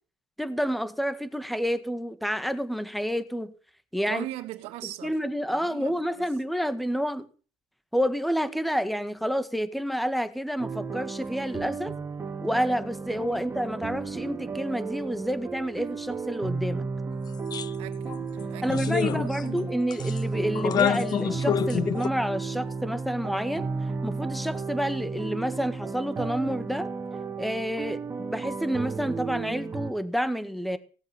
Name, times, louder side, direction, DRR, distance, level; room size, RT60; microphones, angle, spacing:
voice 1, 0.4-3.5 3.9-4.2 5.0-7.3 7.9-11.9 12.4-16.9 18.6-23.7 24.0-26.9 27.4-30.8, equal, ahead, 1.9 m, -29 dB
voice 2, 4.1-5.2 5.5-6.3 13.1-13.6 17.8-19.8, right 15 dB, 75° right, 2.5 m, -40 dB
sound 1, 10.6-29.9, right 4 dB, 25° right, 3.0 m, -33 dB
sound 2, 17.5-17.7 18.1-18.2 18.7-19.6 19.9-20.2 20.5-22.1, left 9 dB, 40° left, 0.9 m, -27 dB
18.5 x 8.0 x 9.0 m
supercardioid pair, 100°, 10 cm